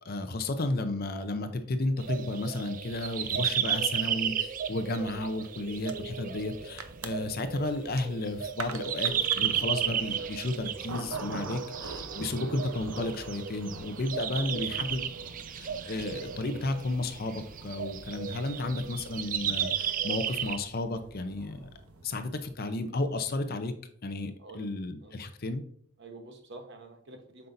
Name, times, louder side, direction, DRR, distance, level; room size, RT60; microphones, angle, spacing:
voice 1, 0.0-15.0 15.5-21.7 22.0-23.7 24.0-25.6, left 2 dB, 45° left, 9 dB, 0.6 m, -33 dB
sound 1, 2.0-20.6, right 9 dB, 35° right, 0.4 m, -34 dB
sound 2, 2.9-22.4, left 1 dB, 10° left, 1.9 m, -57 dB
sound 3, 5.4-5.5 5.7-22.5, right 4 dB, 75° right, 0.7 m, -46 dB
voice 2, 18.5-18.8 24.4-24.7 25.0-25.2 26.0-27.5, right 2 dB, 55° right, 5 dB, 1.1 m, -48 dB
7.9 x 5.5 x 2.6 m, 0.64 s
head